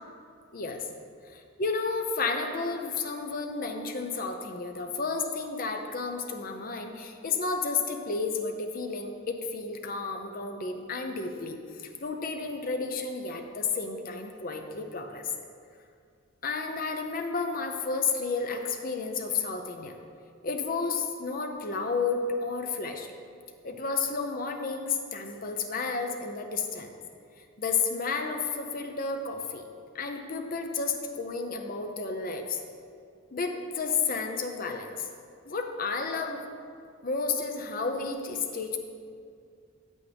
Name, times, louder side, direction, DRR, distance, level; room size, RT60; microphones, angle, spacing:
voice 1, 1.3-15.5 16.4-20.0 20.4-23.1 23.6-26.9 27.6-29.6 29.9-32.6 33.3-35.1 35.5-36.4 37.0-38.8, left 4 dB, 45° left, 4 dB, 0.7 m, -31 dB
8.4 x 8.4 x 3.5 m, 2.3 s
head